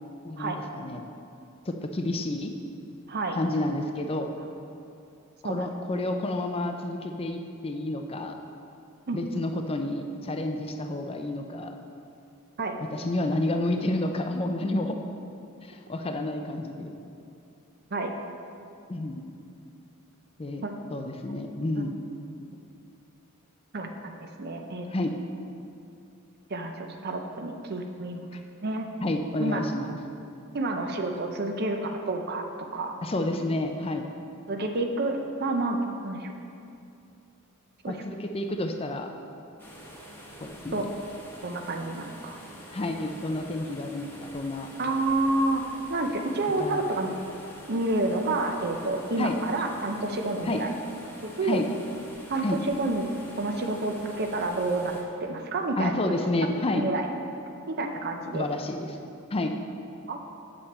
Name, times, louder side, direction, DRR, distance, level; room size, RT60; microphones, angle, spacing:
voice 1, 0.2-1.1 1.7-2.5 3.3-4.3 5.4-8.4 9.1-11.7 12.9-15.0 15.6-16.9 18.9-19.2 20.4-20.6 20.9-21.9 24.9-25.1 28.3-28.4 29.0-30.0 33.0-34.0 37.9-39.1 40.4-40.9 42.7-44.7 46.6-46.8 49.2-49.3 50.4-50.6 51.4-51.6 52.4-52.6 55.8-56.8 58.3-59.0 59.3-59.5, left 1 dB, 25° left, 4 dB, 0.5 m, -30 dB
voice 2, 23.7-24.9 26.5-28.3 28.6-28.9 29.4-29.6 30.5-33.0 34.5-36.3 37.8-38.0 40.7-40.8 41.4-42.4 44.8-45.6 45.9-47.1 47.7-50.7 51.2-51.6 52.3-53.1 53.4-54.9 55.2-55.9 56.8-57.1 57.7-58.4 60.1-60.2, right 2 dB, 50° right, 4 dB, 0.7 m, -29 dB
sound 1, 39.6-55.0, equal, 10° left, 1.0 m, -46 dB
8.2 x 7.7 x 4.2 m, 2.6 s
head